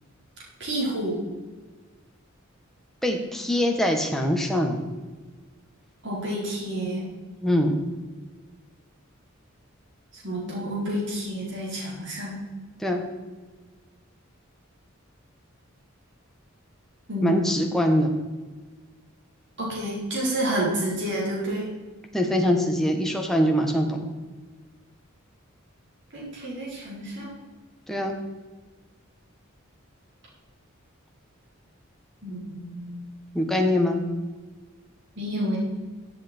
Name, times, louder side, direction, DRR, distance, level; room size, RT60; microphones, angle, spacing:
voice 1, 0.6-1.2 6.0-7.1 10.1-12.4 17.1-17.6 19.6-21.7 26.1-27.3 32.2-33.0 35.2-35.6, right 1 dB, 60° right, -5 dB, 4.3 m, -29 dB
voice 2, 3.0-4.8 7.4-7.8 12.8-13.0 17.2-18.1 22.1-24.1 27.9-28.1 33.3-34.0, left 1 dB, ahead, 2 dB, 1.3 m, -23 dB
14.5 x 7.6 x 4.5 m, 1.3 s
head